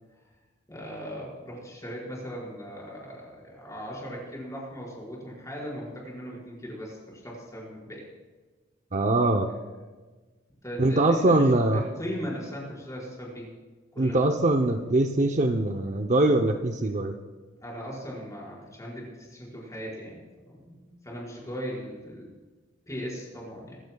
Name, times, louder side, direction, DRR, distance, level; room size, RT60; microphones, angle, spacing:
voice 1, 0.7-8.0 10.6-13.5 13.9-14.2 17.6-22.3 22.9-23.8, equal, 15° left, -4 dB, 4.9 m, -38 dB
voice 2, 8.9-9.5 10.8-11.8 14.0-17.1, right 2 dB, 40° right, 4 dB, 0.7 m, -22 dB
23.0 x 14.5 x 2.3 m, 1.3 s
head